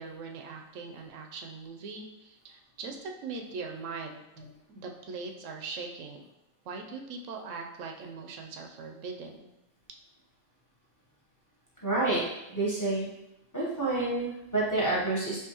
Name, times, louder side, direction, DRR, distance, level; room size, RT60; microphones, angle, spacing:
voice 1, 0.0-4.2 4.7-6.3 6.7-9.5, right 4 dB, 90° right, 2 dB, 0.9 m, -41 dB
voice 2, 11.8-12.2 12.5-13.1 13.5-15.4, right 2 dB, 15° left, -7 dB, 0.9 m, -28 dB
4.6 x 2.6 x 2.9 m, 0.91 s
omnidirectional pair, 1.3 m